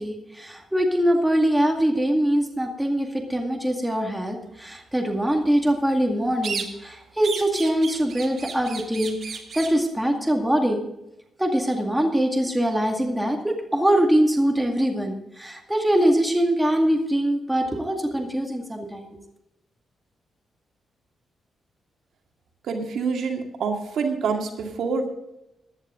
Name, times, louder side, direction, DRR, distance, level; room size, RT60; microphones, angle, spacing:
voice 1, 0.0-10.8 11.4-19.2, right 1 dB, 5° right, 1 dB, 2.1 m, -23 dB
sound 1, 6.4-6.9 7.2-9.8, right 5 dB, 50° right, 1.6 m, -34 dB
voice 2, 22.6-25.1, right 5 dB, 75° right, 3 dB, 2.2 m, -26 dB
15.5 x 11.0 x 3.8 m, 0.87 s
cardioid pair, 130°, 0 cm